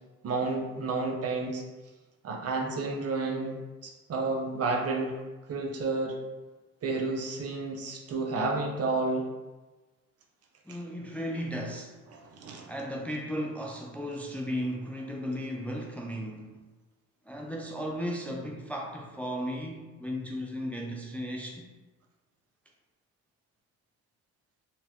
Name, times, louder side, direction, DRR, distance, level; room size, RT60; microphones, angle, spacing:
voice 1, 0.2-1.6 2.2-5.1 5.5-6.2 6.8-9.3 12.1-12.7, right 3 dB, 55° right, 2 dB, 0.6 m, -31 dB
voice 2, 10.7-12.0 12.7-16.6 17.3-21.6, equal, 5° left, 0 dB, 0.4 m, -35 dB
4.2 x 2.1 x 2.8 m, 1.2 s
cardioid pair, 90°, 30 cm